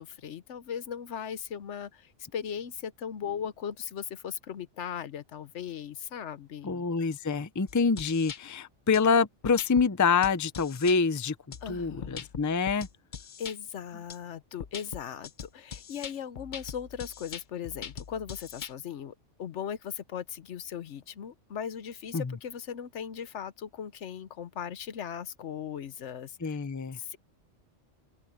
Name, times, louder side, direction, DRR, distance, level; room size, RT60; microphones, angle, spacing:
voice 1, 0.0-6.8 11.6-12.3 13.4-19.1 19.4-26.6 27.0-27.2, left 8 dB, 75° left, 1.1 m, -38 dB
voice 2, 6.6-11.3 11.7-12.9 22.1-22.3 26.4-27.0, left 5 dB, 20° left, 0.5 m, -26 dB
sound 1, 7.7-8.4 8.9-9.0 9.4-9.9 10.2-11.0 11.5-13.6 14.1-14.2 14.6-18.7, left 7 dB, 45° left, 0.9 m, -41 dB
open air
omnidirectional pair, 1.2 m